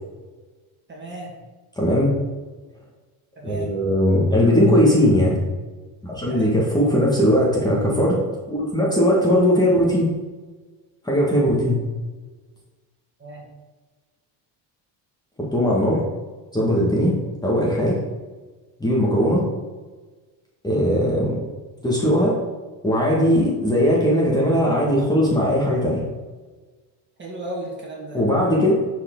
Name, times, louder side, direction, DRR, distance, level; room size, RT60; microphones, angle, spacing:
voice 1, 0.9-1.3 3.4-3.7 6.3-6.6 13.2-13.5 27.2-28.2, right 1 dB, 25° right, -2 dB, 2.2 m, -34 dB
voice 2, 1.8-2.1 3.4-5.4 6.0-8.2 8.5-10.1 11.0-11.8 15.4-16.0 16.5-17.2 17.4-18.0 18.8-19.5 20.6-21.4 21.8-22.4 22.8-26.0 28.1-28.7, equal, 10° left, -4 dB, 1.9 m, -19 dB
11.5 x 4.9 x 3.9 m, 1.3 s
cardioid pair, 140°, 47 cm